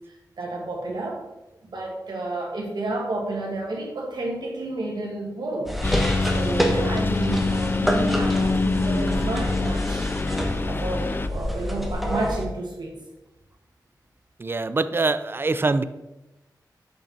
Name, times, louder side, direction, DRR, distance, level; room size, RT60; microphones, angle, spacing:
voice 1, 0.4-1.2 1.6-5.7 6.3-10.1 10.6-13.0, right 2 dB, 75° right, -1 dB, 1.9 m, -31 dB
sound 1, 5.7-12.5, left 1 dB, ahead, 1.2 m, -27 dB
Engine, 5.8-11.3, left 3 dB, 30° left, 0.4 m, -25 dB
voice 2, 14.4-15.8, right 3 dB, 30° right, 12 dB, 0.4 m, -24 dB
6.8 x 5.7 x 4.3 m, 1.0 s
wide cardioid pair, 70°, 7 cm